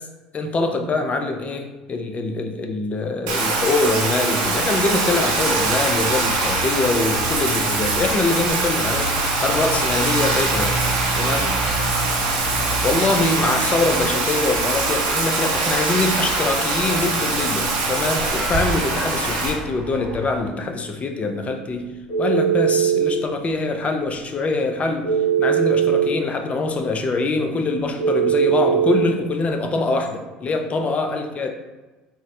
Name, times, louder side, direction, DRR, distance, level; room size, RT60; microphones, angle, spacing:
voice 1, 0.3-9.1 9.4-10.8 11.2-11.6 12.8-21.9 22.2-25.1 25.4-31.5, left 3 dB, 30° left, 5 dB, 0.4 m, -23 dB
Bathtub (filling or washing), 3.3-19.5, right 3 dB, 70° right, 0.7 m, -22 dB
sound 1, 4.4-20.4, equal, 90° right, 1.0 m, -33 dB
Telephone, 22.1-23.1 25.0-26.1 28.0-29.0, right 9 dB, 70° left, 1.1 m, -19 dB
3.9 x 2.0 x 2.6 m, 1.1 s
hypercardioid pair, 65°, 4 cm